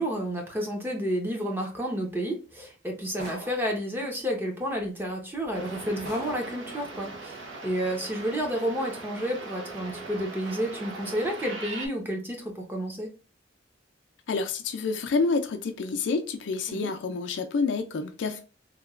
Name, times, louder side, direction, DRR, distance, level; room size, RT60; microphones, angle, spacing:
voice 1, 0.0-13.1 16.7-16.9, equal, 10° right, 0.6 m, -31 dB
sound 1, 3.2-3.8 4.8-4.9 5.4-5.6 6.1-6.6, right 1 dB, 55° right, 1.1 m, -42 dB
sound 2, 5.5-11.9, right 3 dB, 75° right, 0.6 m, -40 dB
voice 2, 14.3-18.4, left 4 dB, 70° left, 0.4 m, -28 dB
2.9 x 2.2 x 2.3 m
head